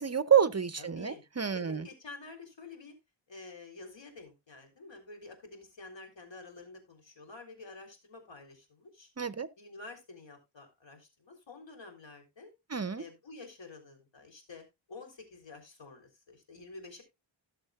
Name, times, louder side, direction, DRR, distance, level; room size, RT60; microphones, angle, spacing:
voice 1, 0.0-1.8 9.2-9.5 12.7-13.0, right 8 dB, 35° right, 0.6 m, -28 dB
voice 2, 0.8-1.3 1.5-3.0 3.3-9.1 9.6-12.5 12.9-17.0, left 3 dB, 70° left, 3.7 m, -49 dB
18.0 x 6.6 x 2.4 m
wide cardioid pair, 90°, 46 cm